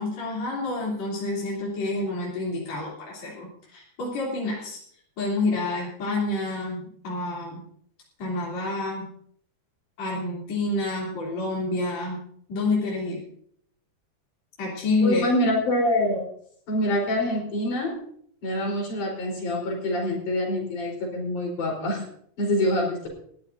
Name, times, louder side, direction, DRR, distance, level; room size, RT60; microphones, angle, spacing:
voice 1, 0.0-4.8 5.2-7.6 8.2-9.1 10.0-12.2 12.5-13.2 14.6-15.3, left 2 dB, 60° left, -4 dB, 4.6 m, -28 dB
voice 2, 15.0-16.2 16.7-18.0 18.4-22.0 22.4-23.1, left 1 dB, 80° left, 0 dB, 5.8 m, -25 dB
20.5 x 14.0 x 2.7 m, 0.63 s
omnidirectional pair, 3.5 m